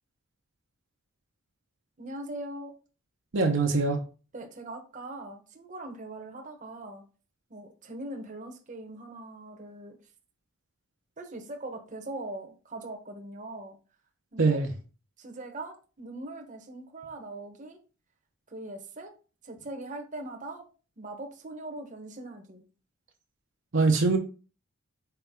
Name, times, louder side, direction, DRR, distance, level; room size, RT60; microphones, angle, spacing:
voice 1, 2.0-2.7 4.3-7.0 7.5-10.0 11.2-13.8 14.3-14.6 15.2-17.8 18.5-19.1 19.4-20.6 21.0-22.6, right 2 dB, 35° right, 3 dB, 1.0 m, -41 dB
voice 2, 3.3-4.0 14.4-14.7 23.7-24.2, right 3 dB, 60° right, 2 dB, 0.8 m, -23 dB
5.8 x 4.6 x 3.6 m, 0.35 s
head